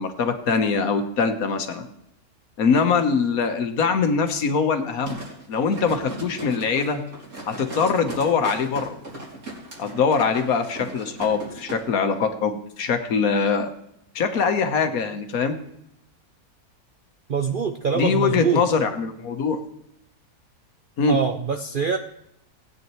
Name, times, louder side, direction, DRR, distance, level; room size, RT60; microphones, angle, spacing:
voice 1, 0.0-1.9 2.6-5.2 5.5-7.0 7.5-8.9 9.8-13.7 14.1-15.6 17.9-19.6 21.0-21.2, left 5 dB, 70° left, 7 dB, 1.5 m, -23 dB
sound 1, 5.1-11.8 12.1-12.2, right 2 dB, 70° right, 3.3 m, -37 dB
voice 2, 17.3-18.6 21.1-22.0, right 6 dB, 50° right, 5 dB, 0.6 m, -24 dB
18.0 x 9.3 x 3.1 m, 0.77 s
omnidirectional pair, 1.6 m